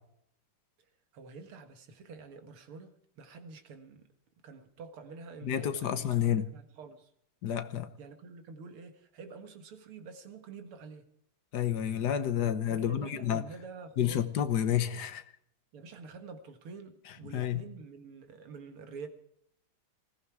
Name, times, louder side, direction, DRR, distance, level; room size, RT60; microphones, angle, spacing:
voice 1, 1.1-4.0 4.4-6.1 6.5-7.1 8.0-11.1 12.7-14.2 15.7-19.1, right 4 dB, 90° right, 2.6 m, -47 dB
voice 2, 5.4-6.5 7.4-7.9 11.5-13.4 14.0-15.2 17.3-17.6, left 10 dB, 55° left, 1.6 m, -30 dB
20.0 x 15.0 x 4.7 m
omnidirectional pair, 2.3 m